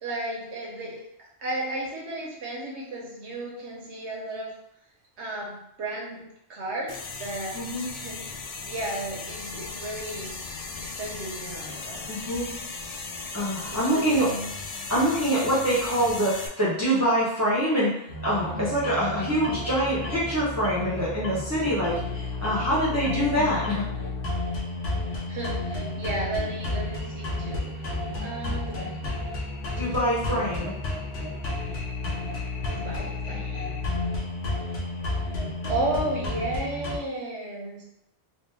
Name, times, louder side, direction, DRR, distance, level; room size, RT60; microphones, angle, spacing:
voice 1, 0.0-4.5 5.2-10.3 10.8-12.1 13.7-14.5 25.3-27.7 28.2-29.0 32.7-33.8 35.7-37.8, right 2 dB, 85° right, -3 dB, 1.3 m, -34 dB
sound 1, 6.9-16.5, left 4 dB, 50° left, 0.4 m, -37 dB
voice 2, 7.5-7.9 12.1-12.5 13.3-14.3 14.9-22.0 22.4-23.8 29.8-30.7, equal, 15° right, -7 dB, 0.8 m, -25 dB
sound 2, 18.1-37.0, left 2 dB, 70° left, 1.0 m, -31 dB
3.3 x 2.6 x 3.3 m, 0.77 s
omnidirectional pair, 1.1 m